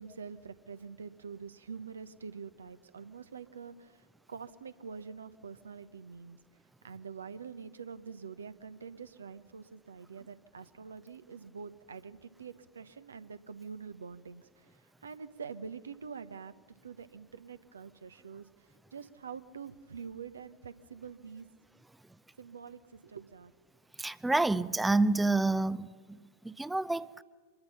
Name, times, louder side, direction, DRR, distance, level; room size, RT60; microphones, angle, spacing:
voice 1, 0.0-6.4 6.8-16.5 16.8-21.5 22.4-23.5, right 6 dB, 70° right, 1.0 m, -46 dB
voice 2, 24.0-27.2, right 2 dB, 5° right, 0.6 m, -29 dB
25.5 x 21.5 x 5.6 m
figure-of-eight pair, 90°, 0 cm